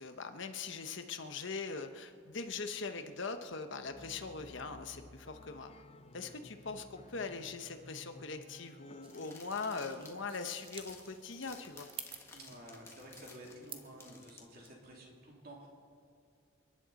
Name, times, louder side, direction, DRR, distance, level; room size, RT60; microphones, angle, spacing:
voice 1, 0.0-5.7 6.1-11.9, left 4 dB, 60° left, 7 dB, 0.9 m, -41 dB
sound 1, 3.8-10.6, left 2 dB, 30° left, 0.5 m, -56 dB
sound 2, 9.0-14.7, left 3 dB, 15° left, 1.4 m, -55 dB
sound 3, 9.0-14.0, right 7 dB, 25° right, 0.7 m, -52 dB
voice 2, 12.3-15.7, right 1 dB, 45° right, -2 dB, 3.0 m, -52 dB
29.0 x 10.5 x 4.2 m, 2.2 s
head